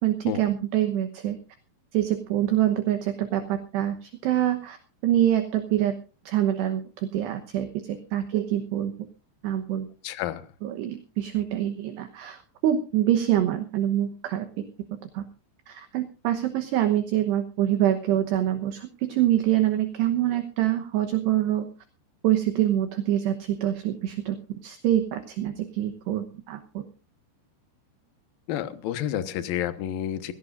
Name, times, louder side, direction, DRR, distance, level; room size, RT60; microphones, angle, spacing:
voice 1, 0.0-1.4 1.9-4.8 5.0-6.0 6.3-8.9 9.4-9.9 10.6-14.5 15.1-15.2 15.7-21.7 22.2-24.4 24.6-26.8, right 12 dB, 70° right, 7 dB, 2.8 m, -25 dB
voice 2, 10.0-10.5 28.5-30.3, left 11 dB, 75° left, 10 dB, 2.2 m, -30 dB
22.0 x 16.5 x 2.6 m, 0.35 s
omnidirectional pair, 5.9 m